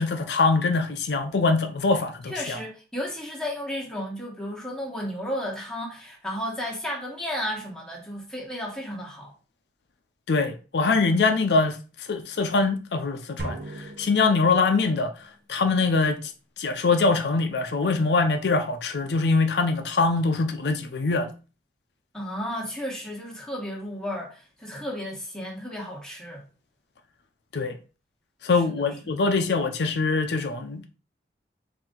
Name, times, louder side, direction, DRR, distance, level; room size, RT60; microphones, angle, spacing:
voice 1, 0.0-2.6 10.3-11.8 12.1-15.1 15.5-16.2 16.6-21.3 27.5-27.8 28.4-30.9, left 3 dB, 75° left, 0.5 m, -23 dB
voice 2, 2.2-9.3 22.1-26.4 28.5-28.9, equal, 5° left, 1.2 m, -33 dB
sound 1, 13.4-15.1, right 1 dB, 65° right, 0.8 m, -38 dB
4.4 x 2.6 x 3.7 m
head